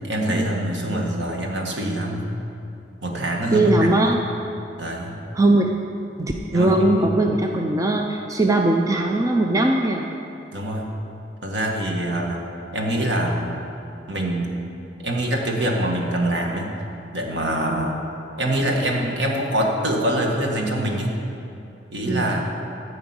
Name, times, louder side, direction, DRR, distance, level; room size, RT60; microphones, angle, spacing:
voice 1, 0.0-2.3 3.0-3.7 3.9-4.1 4.8-5.2 6.5-7.1 10.5-10.9 11.4-12.4 12.7-13.6 14.1-14.6 15.0-16.7 17.1-18.0 18.4-21.2 21.9-22.4, right 1 dB, 80° right, 0 dB, 1.8 m, -24 dB
voice 2, 3.5-4.2 5.3-5.7 6.2-10.2 17.7-17.9 22.1-22.3, right 2 dB, 20° right, 2 dB, 0.6 m, -20 dB
14.0 x 5.1 x 8.8 m, 2.8 s
head